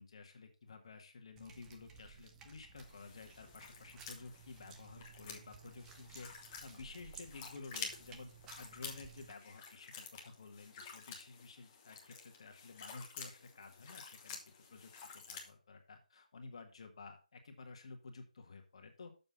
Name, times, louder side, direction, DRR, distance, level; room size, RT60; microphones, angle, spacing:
voice 1, 0.0-19.1, left 4 dB, 45° left, 5 dB, 1.6 m, -53 dB
sound 1, 1.4-9.3, right 6 dB, 10° right, 0.6 m, -57 dB
sound 2, 2.8-15.5, left 5 dB, 20° left, 1.2 m, -51 dB
6.9 x 5.4 x 5.6 m, 0.33 s
hypercardioid pair, 170°, 4 cm